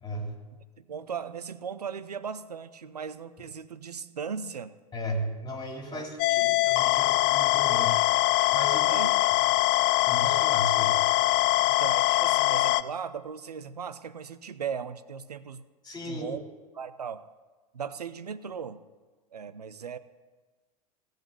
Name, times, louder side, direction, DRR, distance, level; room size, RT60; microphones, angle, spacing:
voice 1, 0.0-0.3 4.9-8.0 8.5-9.3 10.0-11.1 15.8-16.3, equal, 20° left, 2 dB, 3.2 m, -36 dB
voice 2, 0.8-4.8 5.9-6.5 8.9-9.1 11.7-15.6 16.0-16.4 16.7-17.2 17.7-18.8 19.3-20.0, right 6 dB, 90° right, 15 dB, 0.6 m, -37 dB
sound 1, 6.2-12.8, left 16 dB, 50° left, 0.5 m, -23 dB
17.0 x 6.5 x 8.5 m, 1.3 s
hypercardioid pair, 85°, 20 cm